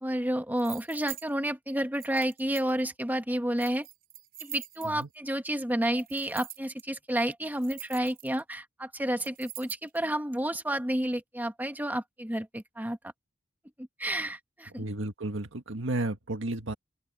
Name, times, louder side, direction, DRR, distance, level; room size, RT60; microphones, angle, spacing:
voice 1, 0.0-3.9 4.4-13.0 13.8-14.8, right 1 dB, 10° right, 1.5 m, -30 dB
sound 1, 0.6-1.2 2.0-2.9 3.6-5.1 6.0-6.8 7.4-8.5 9.2-10.0, right 12 dB, 50° right, 6.3 m, -43 dB
voice 2, 14.7-16.7, right 2 dB, 75° right, 1.7 m, -33 dB
open air
head